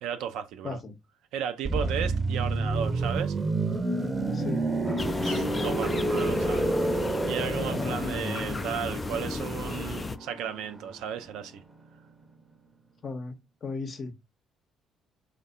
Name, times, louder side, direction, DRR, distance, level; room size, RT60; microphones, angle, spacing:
voice 1, 0.0-0.8 1.3-3.4 5.2-6.7 7.3-11.6, right 8 dB, 65° right, 0.3 m, -34 dB
sound 1, 1.6-11.3 11.6-11.8, right 2 dB, 25° right, 0.6 m, -30 dB
voice 2, 4.3-4.7 7.7-8.0 13.0-14.1, left 3 dB, 40° left, 0.7 m, -36 dB
Drum, 4.8-8.6, left 2 dB, 10° left, 0.9 m, -37 dB
sound 2, 5.0-10.2, left 3 dB, 25° left, 0.3 m, -33 dB
3.3 x 2.1 x 2.5 m
figure-of-eight pair, 45°, 0 cm